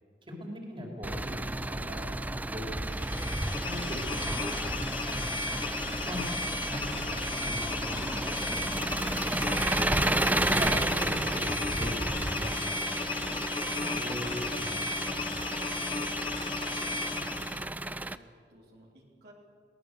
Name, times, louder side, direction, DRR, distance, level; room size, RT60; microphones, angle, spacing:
voice 1, 0.3-2.7 2.9-5.3 6.0-6.3 6.7-8.0 8.3-10.2 10.4-11.4 11.7-13.3 13.7-15.6, equal, 30° right, 0 dB, 4.0 m, -41 dB
Engine, 1.0-18.2, right 2 dB, 10° right, 0.4 m, -32 dB
sound 1, 2.8-17.6, left 4 dB, 30° left, 1.0 m, -35 dB
voice 2, 16.5-17.5 18.1-19.3, right 1 dB, 65° right, -3 dB, 3.5 m, -57 dB
23.0 x 18.0 x 6.8 m, 2.2 s
head